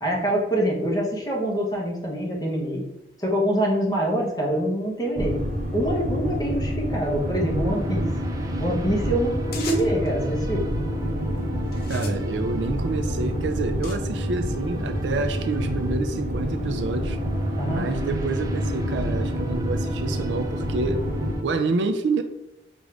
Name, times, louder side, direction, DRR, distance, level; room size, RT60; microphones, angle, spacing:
voice 1, 0.0-2.8 3.2-5.4 5.7-8.1 8.6-10.7 17.6-17.9, right 1 dB, 20° left, -2 dB, 1.0 m, -25 dB
sound 1, 5.2-21.3, equal, 45° right, 0.7 m, -28 dB
sound 2, 6.9-21.4, right 2 dB, 20° right, 0.3 m, -37 dB
sound 3, 9.5-10.1 10.9-11.2 11.7-14.0, left 4 dB, 55° left, 0.6 m, -39 dB
voice 2, 11.9-17.2 17.7-21.1 21.4-22.2, right 3 dB, 85° right, 8 dB, 0.4 m, -28 dB
5.0 x 2.5 x 3.3 m, 0.84 s
head